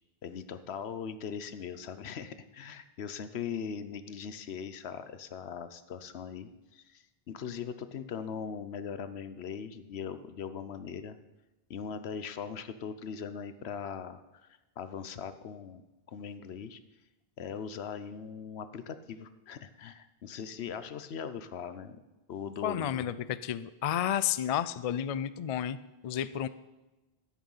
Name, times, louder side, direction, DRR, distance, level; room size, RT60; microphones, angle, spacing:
voice 1, 0.2-11.2 11.7-14.5 14.8-15.8 16.1-16.8 17.4-22.0 22.3-23.1, left 7 dB, 85° left, 11 dB, 1.0 m, -40 dB
voice 2, 22.6-25.8 26.0-26.5, left 10 dB, 55° left, 15 dB, 0.4 m, -31 dB
13.0 x 8.9 x 5.5 m, 1.1 s
omnidirectional pair, 1.1 m